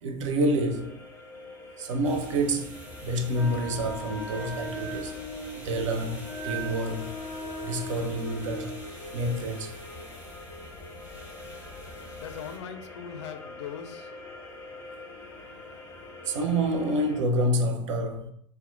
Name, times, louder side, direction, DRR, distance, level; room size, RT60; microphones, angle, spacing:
voice 1, 0.0-1.0 1.8-5.2 5.6-7.1 7.6-8.8 9.1-9.7 16.2-18.3, right 1 dB, 60° right, 0.5 m, -28 dB
sound 1, 0.5-17.2, left 2 dB, 15° left, 0.7 m, -45 dB
sound 2, 2.0-12.6, equal, 10° right, 1.1 m, -47 dB
Wind instrument woodwind instrument, 3.3-8.8, right 1 dB, 45° right, 1.2 m, -38 dB
voice 2, 12.1-14.3, left 7 dB, 55° left, 0.4 m, -40 dB
4.1 x 2.2 x 2.5 m
figure-of-eight pair, 85°, 18 cm